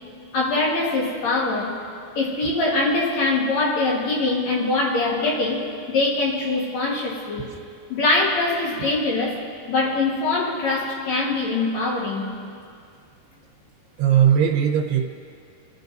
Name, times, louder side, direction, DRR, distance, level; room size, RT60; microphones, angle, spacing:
voice 1, 0.3-1.7 2.2-7.5 7.9-9.4 9.7-12.3, left 2 dB, 55° left, -2 dB, 2.3 m, -23 dB
voice 2, 14.0-15.0, right 9 dB, 85° right, -2 dB, 3.3 m, -19 dB
27.0 x 14.0 x 2.7 m, 2.4 s
omnidirectional pair, 4.6 m